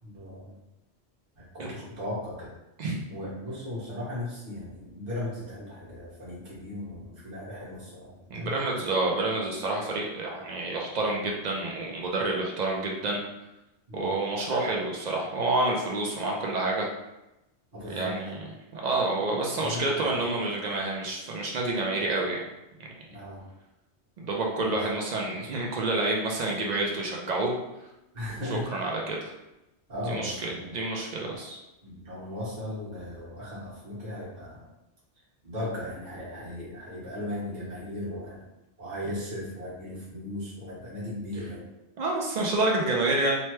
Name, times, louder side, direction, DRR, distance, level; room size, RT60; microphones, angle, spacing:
voice 1, 0.0-0.5 1.3-2.5 3.1-8.6 13.9-14.1 17.7-18.1 19.5-20.2 23.1-23.4 24.6-24.7 28.1-28.7 29.9-30.8 31.1-31.4 31.8-34.6 35.4-38.4 38.8-41.6, left 1 dB, 40° right, -8 dB, 1.2 m, -37 dB
voice 2, 8.3-13.2 13.9-16.9 17.9-18.4 18.7-22.5 22.8-22.9 24.2-27.5 28.5-29.3 30.1-30.3 30.7-31.6 42.0-43.4, right 2 dB, 60° right, -1 dB, 0.4 m, -28 dB
2.9 x 2.1 x 3.1 m, 0.93 s
omnidirectional pair, 1.2 m